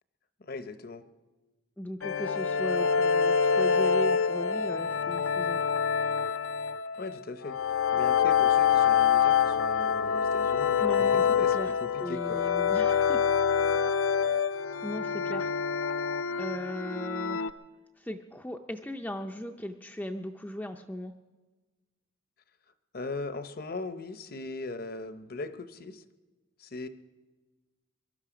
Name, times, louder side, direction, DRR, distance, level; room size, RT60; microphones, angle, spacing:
voice 1, 0.4-1.1 7.0-10.8 11.1-12.5 22.9-26.0 26.6-26.9, left 3 dB, 45° left, 11 dB, 0.7 m, -39 dB
voice 2, 1.8-5.6 10.8-11.2 11.5-11.7 12.0-13.2 13.9-14.1 14.8-15.5 16.4-17.5 18.0-21.1, left 1 dB, 10° left, 4 dB, 0.4 m, -37 dB
sound 1, 2.0-17.5, left 7 dB, 80° left, 0.5 m, -26 dB
22.5 x 12.0 x 5.0 m, 1.2 s
head